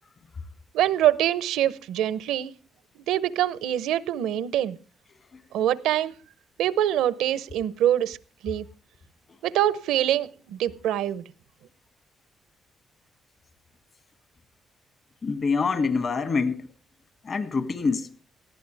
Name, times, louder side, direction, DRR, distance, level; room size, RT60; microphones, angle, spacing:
voice 1, 0.7-2.5 3.1-4.8 5.5-6.1 6.6-8.2 8.4-8.6 9.4-11.2, right 12 dB, 90° right, 0.7 m, -24 dB
voice 2, 15.2-16.7 17.2-18.1, left 4 dB, 45° left, 2.0 m, -25 dB
19.5 x 15.0 x 3.4 m
cardioid pair, 90°, 0 cm